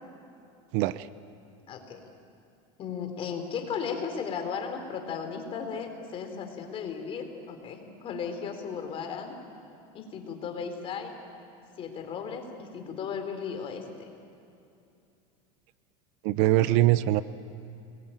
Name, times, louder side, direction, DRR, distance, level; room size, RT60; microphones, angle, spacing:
voice 1, 0.7-1.1 16.2-17.2, right 15 dB, 60° right, 15 dB, 0.8 m, -22 dB
voice 2, 1.7-2.0 2.8-9.3 9.9-11.1 11.8-14.1 16.4-16.8, left 6 dB, 35° left, 5 dB, 4.0 m, -36 dB
29.5 x 21.5 x 9.1 m, 2.6 s
supercardioid pair, 140°, 16 cm